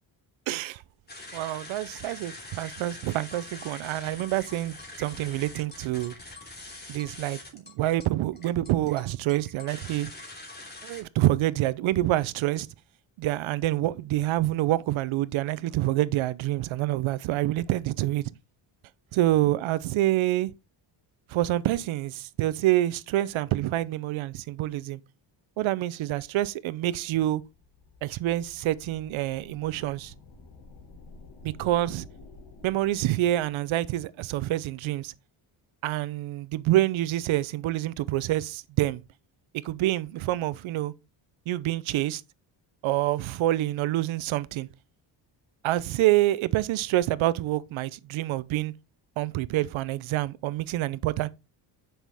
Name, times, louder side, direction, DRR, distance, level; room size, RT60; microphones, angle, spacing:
voice 1, 0.5-0.8 1.3-6.1 6.9-10.1 10.8-12.7 13.2-18.3 19.1-20.5 21.3-25.0 25.6-27.4 28.0-30.1 31.4-32.1 32.6-35.1 35.8-39.0 39.6-40.9 41.5-42.2 42.8-44.7 45.6-48.7 49.2-51.3, right 15 dB, 75° right, 0.7 m, -27 dB
sound 1, 1.1-11.0, left 2 dB, 20° left, 3.1 m, -44 dB
sound 2, 27.5-33.8, left 3 dB, 85° left, 3.0 m, -51 dB
10.0 x 5.8 x 3.5 m
cardioid pair, 120°, 48 cm